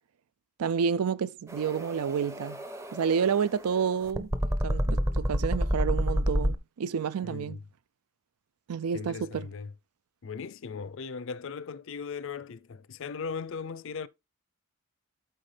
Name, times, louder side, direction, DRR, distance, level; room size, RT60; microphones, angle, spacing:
voice 1, 0.6-2.6 2.9-4.3 4.6-7.6 8.7-9.5, right 6 dB, 85° right, 0.4 m, -29 dB
sound 1, 1.5-6.5, equal, 15° right, 0.6 m, -29 dB
voice 2, 7.2-7.6 8.9-9.7 10.2-14.1, left 5 dB, 60° left, 0.5 m, -38 dB
13.0 x 4.4 x 3.3 m
head